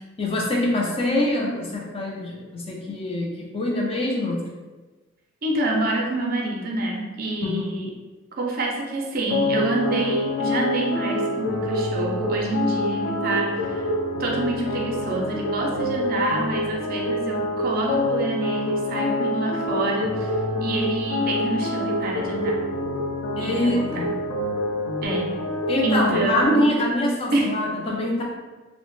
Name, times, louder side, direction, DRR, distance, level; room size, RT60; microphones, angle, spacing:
voice 1, 0.2-4.4 7.4-7.7 23.4-24.0 25.7-28.2, left 1 dB, 30° left, -2 dB, 0.5 m, -24 dB
voice 2, 5.4-7.9 8.4-13.8 14.2-20.3 20.6-22.6 23.4-24.0 25.0-25.4 25.8-26.7 27.3-27.5, right 2 dB, 45° right, 0 dB, 0.5 m, -27 dB
sound 1, 9.3-26.4, left 1 dB, 80° left, 0.5 m, -26 dB
2.8 x 2.1 x 3.1 m, 1.2 s
head